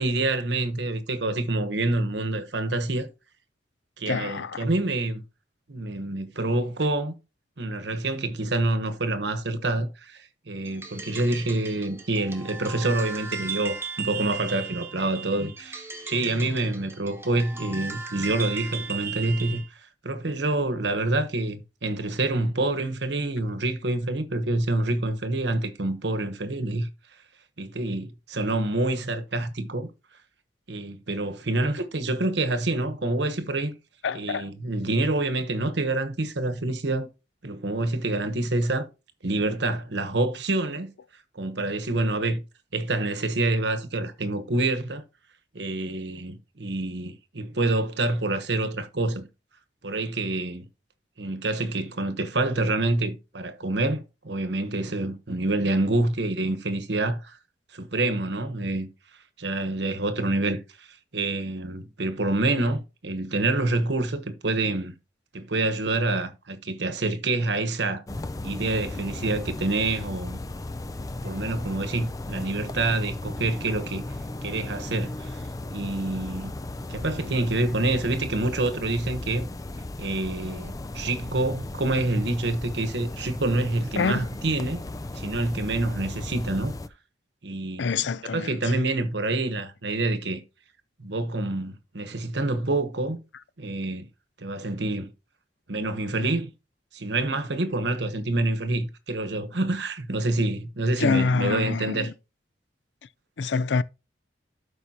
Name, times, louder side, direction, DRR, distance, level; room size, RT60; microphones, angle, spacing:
voice 1, 0.0-3.1 4.0-5.2 5.7-7.1 7.6-19.6 20.0-26.9 27.6-29.9 30.7-33.7 34.1-37.1 37.4-38.9 39.2-40.9 41.3-42.4 42.7-45.0 45.5-49.3 49.8-50.7 51.2-57.4 57.7-58.9 59.4-60.9 61.1-64.9 65.3-68.0 68.4-70.4 71.2-74.0 74.4-75.4 75.7-76.5 76.9-79.5 80.0-84.8 85.1-86.7 87.4-87.9 88.2-90.4 91.0-93.2 93.6-94.1 94.4-95.1 95.7-96.5 96.9-102.1, right 2 dB, 70° right, 1.2 m, -27 dB
voice 2, 4.1-4.6 34.0-34.5 84.0-84.3 87.8-88.7 101.0-102.1 103.4-103.8, left 4 dB, 80° left, 0.5 m, -26 dB
Cellphone Alarm Clock Long, 10.6-19.7, right 5 dB, 15° right, 1.1 m, -36 dB
sound 1, 68.1-86.9, left 2 dB, 20° left, 0.4 m, -36 dB
12.5 x 5.0 x 2.9 m
head